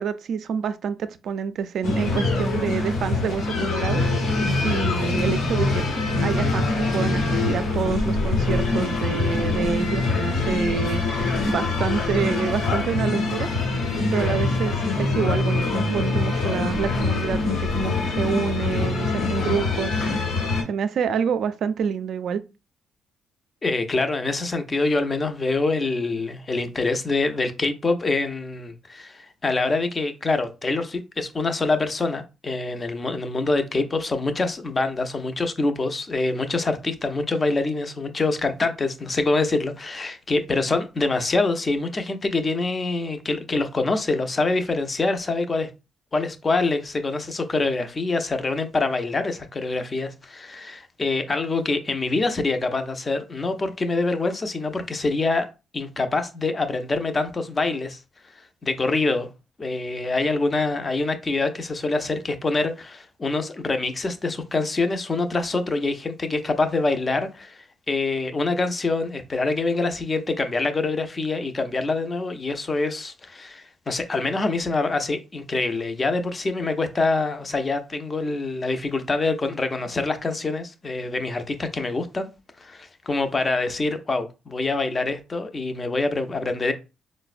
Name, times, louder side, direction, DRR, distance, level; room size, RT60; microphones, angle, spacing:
voice 1, 0.0-5.8 6.2-13.5 14.1-19.9 20.7-22.4, right 7 dB, 65° right, 0.3 m, -27 dB
sound 1, 1.8-20.6, left 3 dB, 85° left, 0.9 m, -24 dB
voice 2, 23.6-45.7 46.1-55.5 55.7-58.0 58.6-59.3 59.6-82.3 82.6-86.7, left 3 dB, 30° left, 0.5 m, -25 dB
3.9 x 2.0 x 2.4 m
cardioid pair, 90°, 0 cm